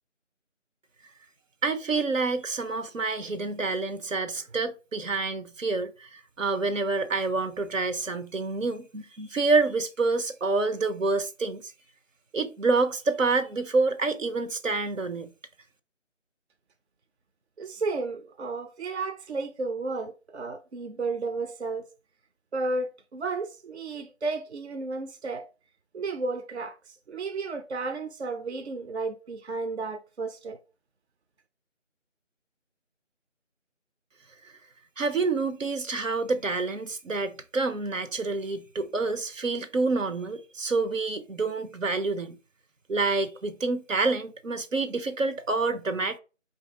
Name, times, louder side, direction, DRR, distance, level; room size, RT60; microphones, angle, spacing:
voice 1, 1.6-11.7 12.3-15.3 35.0-42.4 42.9-46.2, right 3 dB, 85° right, 0.8 m, -27 dB
voice 2, 17.6-21.9 22.5-25.4 25.9-30.6, right 3 dB, 60° right, 0.6 m, -33 dB
4.6 x 2.7 x 3.4 m
figure-of-eight pair, 170°, 38 cm